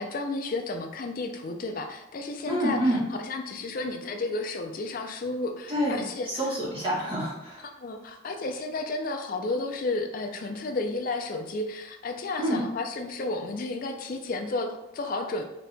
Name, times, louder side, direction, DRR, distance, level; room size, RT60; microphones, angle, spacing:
voice 1, 0.0-6.3 7.8-15.4, left 2 dB, 45° left, 4 dB, 0.4 m, -32 dB
voice 2, 2.5-3.0 5.7-7.6 12.4-12.6, equal, 25° right, -6 dB, 1.4 m, -27 dB
4.0 x 2.8 x 3.3 m, 0.90 s
head